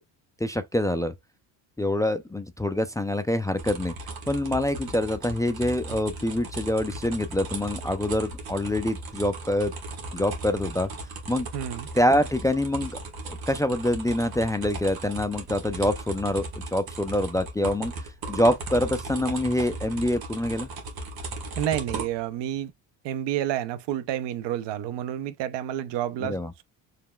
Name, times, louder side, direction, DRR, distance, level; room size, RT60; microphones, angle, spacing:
voice 1, 0.4-1.1 1.8-3.9 4.3-9.7 10.1-10.9 11.3-11.5 11.9-13.0 13.3-17.9 18.3-20.7 26.2-26.5, left 1 dB, 10° left, 0.4 m, -25 dB
sound 1, 3.6-22.3, right 2 dB, 50° right, 1.5 m, -37 dB
voice 2, 11.5-11.9 21.6-22.7 23.0-26.4, right 11 dB, 70° right, 0.6 m, -29 dB
4.9 x 3.3 x 2.3 m
supercardioid pair, 85°, 45 cm